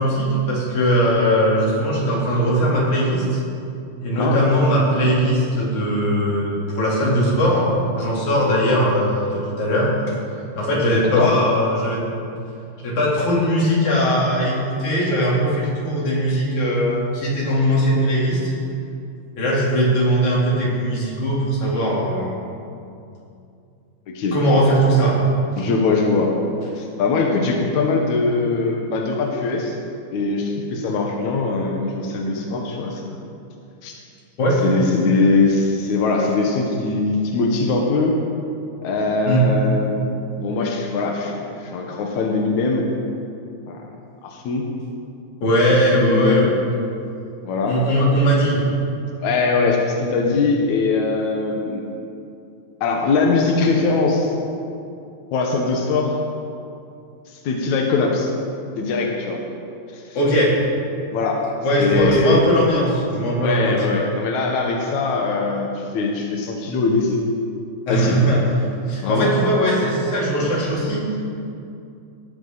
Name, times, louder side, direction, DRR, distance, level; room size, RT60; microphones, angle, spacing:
voice 1, 0.0-3.4 4.0-9.9 10.6-12.0 12.8-18.5 19.4-22.3 24.3-25.2 34.4-34.6 39.3-39.5 45.4-46.5 47.6-48.6 60.1-60.5 61.6-63.8 67.9-68.4 68.9-71.2, equal, 40° left, -6 dB, 4.5 m, -19 dB
voice 2, 25.6-26.3 26.8-29.8 30.1-33.2 33.8-33.9 34.6-38.2 38.8-40.0 40.4-42.9 43.7-43.8 44.2-44.7 45.9-46.5 47.4-47.8 49.2-51.8 52.8-54.3 55.3-56.2 57.4-58.3 58.8-59.4 59.9-60.0 61.1-61.5 61.8-62.5 63.4-67.2 67.9-68.2 69.0-69.3 70.6-70.7, left 3 dB, 70° left, 0 dB, 1.8 m, -21 dB
19.0 x 14.0 x 4.1 m, 2.5 s
omnidirectional pair, 5.2 m